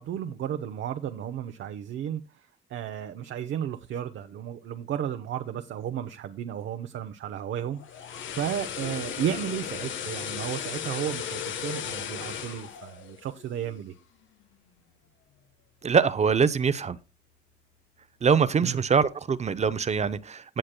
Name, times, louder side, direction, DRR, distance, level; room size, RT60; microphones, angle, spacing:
voice 1, 0.0-13.9 18.6-18.8, right 9 dB, 70° right, 0.8 m, -33 dB
sound 1, 7.7-13.9 14.2-14.4, left 8 dB, 75° left, 1.1 m, -36 dB
voice 2, 15.8-17.0 18.2-20.6, right 6 dB, 35° right, 0.6 m, -23 dB
16.5 x 6.5 x 2.2 m
cardioid pair, 90°, 20 cm